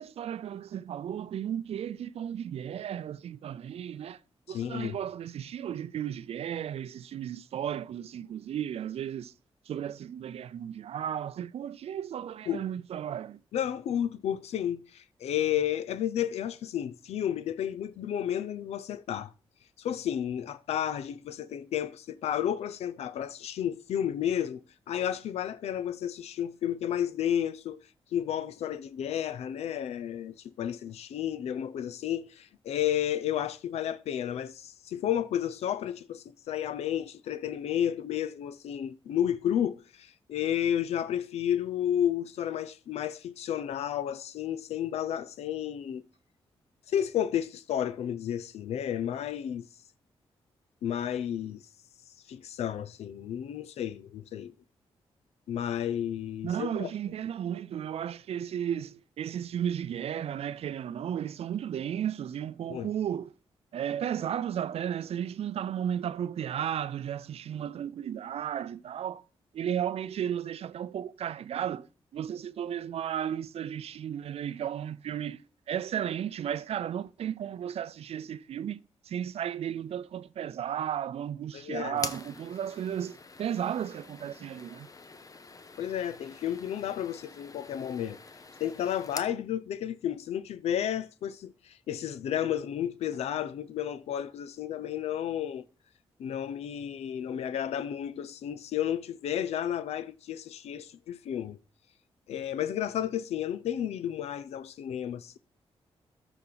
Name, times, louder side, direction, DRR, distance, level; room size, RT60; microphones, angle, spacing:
voice 1, 0.0-4.2 4.5-9.3 9.7-13.4 56.4-63.3 63.7-69.2 69.5-71.9 72.1-75.4 75.7-84.9, right 9 dB, 70° right, 0.5 m, -34 dB
voice 2, 4.5-5.0 12.5-12.6 13.5-19.3 19.8-27.8 28.1-46.1 46.9-49.7 50.8-51.6 52.3-54.5 55.5-56.9 62.7-62.9 81.5-82.0 85.8-88.2 88.6-95.7 96.2-101.6 102.3-105.4, left 10 dB, 90° left, 0.5 m, -32 dB
sound 1, 81.9-89.4, left 3 dB, 35° left, 0.8 m, -45 dB
13.5 x 5.0 x 4.0 m
cardioid pair, 75°, 11 cm